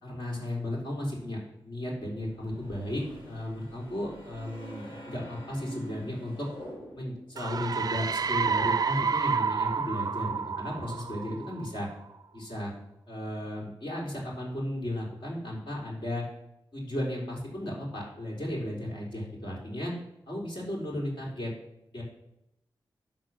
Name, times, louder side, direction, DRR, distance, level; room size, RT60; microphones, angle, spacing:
voice 1, 0.0-6.5 6.9-11.9 12.3-12.7 13.1-16.2 16.7-19.9 20.3-21.5 21.9-22.0, left 1 dB, 60° left, -3 dB, 3.6 m, -35 dB
sound 1, 2.1-7.3, equal, 90° left, 2.7 m, -46 dB
sound 2, 7.4-11.9, right 5 dB, 45° right, 0.3 m, -29 dB
11.5 x 3.8 x 6.1 m, 0.82 s
cardioid pair, 45°, 9 cm